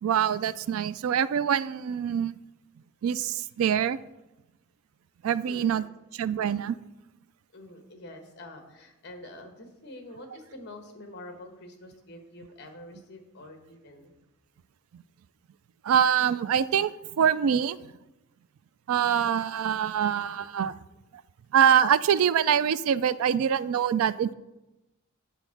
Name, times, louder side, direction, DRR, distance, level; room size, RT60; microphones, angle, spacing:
voice 1, 0.0-2.4 3.0-4.0 5.2-5.8 6.1-6.8 15.8-17.8 18.9-20.7 21.5-24.3, right 8 dB, 80° right, 17 dB, 0.3 m, -24 dB
voice 2, 5.4-5.9 7.5-14.1, left 1 dB, 50° left, 5 dB, 1.2 m, -46 dB
9.1 x 4.3 x 5.8 m, 0.98 s
head